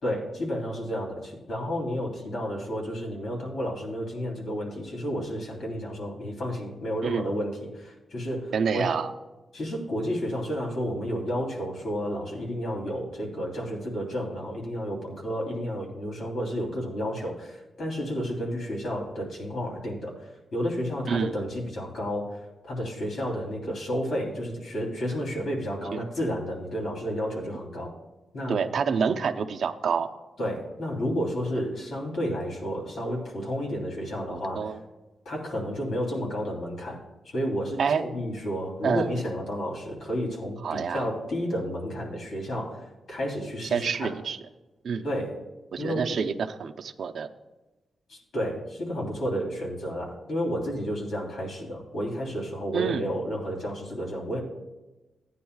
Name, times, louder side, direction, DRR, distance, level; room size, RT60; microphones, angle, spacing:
voice 1, 0.0-8.9 9.5-27.9 28.3-28.6 30.4-34.7 35.2-44.1 45.0-45.4 45.8-46.2 48.1-54.4, equal, 70° left, -2 dB, 3.3 m, -31 dB
voice 2, 8.5-9.1 21.1-21.5 25.9-26.0 28.5-30.1 34.3-34.8 37.8-38.0 38.8-39.1 40.6-41.1 43.7-44.4 44.8-45.1 45.7-47.3 52.7-53.1, right 6 dB, 65° right, 8 dB, 0.6 m, -27 dB
17.0 x 9.6 x 2.3 m, 1.1 s
wide cardioid pair, 130°, 0 cm